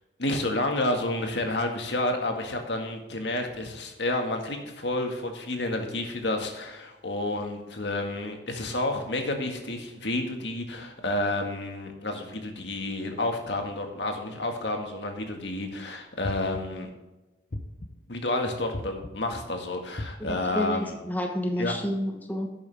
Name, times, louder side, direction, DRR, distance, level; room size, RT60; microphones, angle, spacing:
voice 1, 0.2-16.9 18.1-20.9 21.6-21.7, left 2 dB, 75° left, 3 dB, 1.8 m, -30 dB
sound 1, 16.2-16.9 17.5-18.2 18.7-19.4 20.0-20.6, left 1 dB, 50° left, 1.0 m, -38 dB
voice 2, 20.2-22.5, left 1 dB, 10° left, 2 dB, 1.2 m, -30 dB
11.5 x 8.7 x 3.5 m, 1.0 s
head